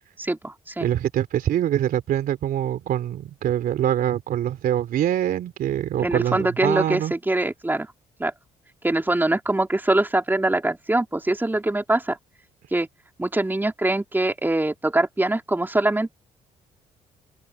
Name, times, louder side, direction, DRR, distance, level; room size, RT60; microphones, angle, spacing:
voice 1, 0.0-0.9 6.0-7.9 8.2-8.3 8.8-12.2 12.7-12.9 13.2-16.2, right 2 dB, 10° right, 3.2 m, -23 dB
voice 2, 0.8-7.1, right 11 dB, 70° right, 3.2 m, -24 dB
open air
supercardioid pair, 60°, 16 cm